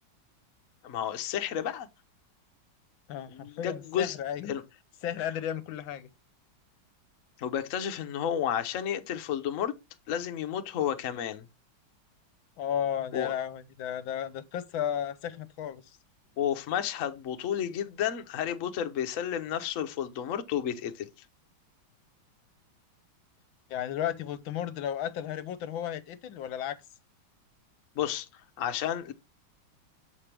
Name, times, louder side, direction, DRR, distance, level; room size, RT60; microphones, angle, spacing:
voice 1, 0.8-1.9 3.3-4.2 4.5-4.6 7.4-9.7 10.1-11.5 13.1-13.3 16.4-21.1 28.0-28.3 28.6-29.1, left 9 dB, 60° left, 0.9 m, -31 dB
voice 2, 3.1-4.5 5.0-6.1 12.6-15.8 23.7-26.8, left 9 dB, 75° left, 1.4 m, -33 dB
7.3 x 4.9 x 3.3 m
omnidirectional pair, 2.3 m